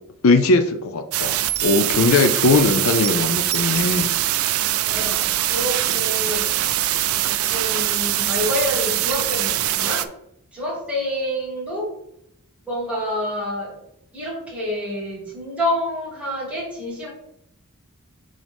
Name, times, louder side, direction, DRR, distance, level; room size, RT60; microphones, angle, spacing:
voice 1, 0.2-4.1, left 3 dB, 65° left, 7 dB, 0.5 m, -19 dB
sound 1, 1.1-10.1, right 13 dB, 70° right, 0.4 m, -22 dB
voice 2, 4.9-6.5 7.5-10.1 10.5-11.9 12.7-13.8 14.1-17.1, left 1 dB, 5° right, -6 dB, 2.3 m, -27 dB
7.1 x 3.9 x 3.4 m, 0.76 s
head